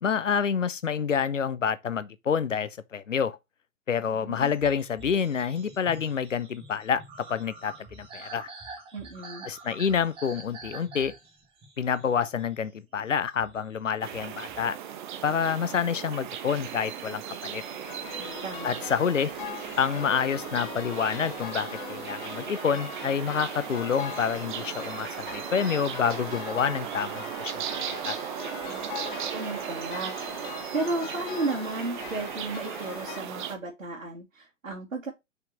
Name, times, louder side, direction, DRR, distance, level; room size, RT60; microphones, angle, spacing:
voice 1, 0.0-3.4 3.9-8.5 9.5-11.1 11.8-14.8 15.2-17.6 18.6-19.3 19.8-28.2, left 7 dB, 70° left, 0.9 m, -28 dB
voice 2, 4.1-4.5 8.9-9.5 18.1-18.9 28.6-28.9 29.3-35.1, right 2 dB, 75° right, 2.8 m, -34 dB
sound 1, 4.4-14.8, right 3 dB, 15° right, 1.9 m, -47 dB
sound 2, 14.0-33.6, right 9 dB, 35° right, 1.2 m, -37 dB
sound 3, 17.6-33.2, left 8 dB, 40° left, 1.3 m, -42 dB
6.0 x 5.7 x 3.1 m
figure-of-eight pair, 120°, 39 cm